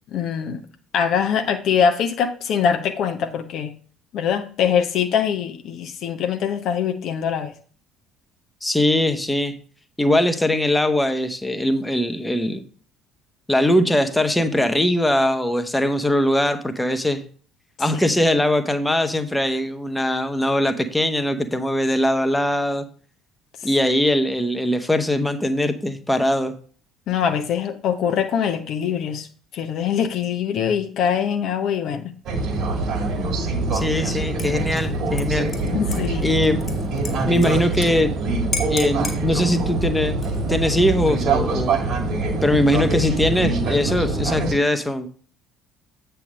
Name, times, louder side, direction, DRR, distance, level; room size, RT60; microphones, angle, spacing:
voice 1, 0.1-0.6 0.9-3.7 4.1-7.5 17.9-18.0 27.1-29.3 29.5-32.1 35.7-36.3, left 7 dB, 50° left, 7 dB, 0.8 m, -23 dB
voice 2, 8.6-9.5 10.0-12.6 13.5-17.2 17.8-22.8 23.6-26.5 33.7-35.5 36.2-36.6 37.3-38.1 38.7-40.2 40.5-41.8 42.4-45.1, left 1 dB, 10° left, 7 dB, 1.0 m, -21 dB
sound 1, 32.3-44.5, right 2 dB, 50° right, 2.1 m, -24 dB
Dishes pots and pans / Liquid, 33.7-34.1 34.4-37.9 38.1-38.2 38.5-39.2 40.1-40.6, left 4 dB, 35° left, 1.9 m, -34 dB
8.3 x 3.4 x 6.4 m, 0.43 s
figure-of-eight pair, 55°, 0 cm